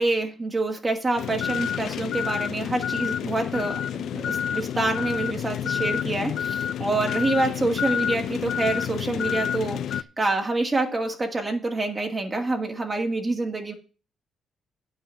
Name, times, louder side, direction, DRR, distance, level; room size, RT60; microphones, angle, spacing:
voice 1, 0.0-13.7, right 2 dB, 25° right, 2 dB, 1.9 m, -27 dB
sound 1, 1.2-10.0, left 9 dB, 70° left, 0.4 m, -29 dB
9.1 x 5.8 x 7.0 m, 0.36 s
cardioid pair, 90°, 0 cm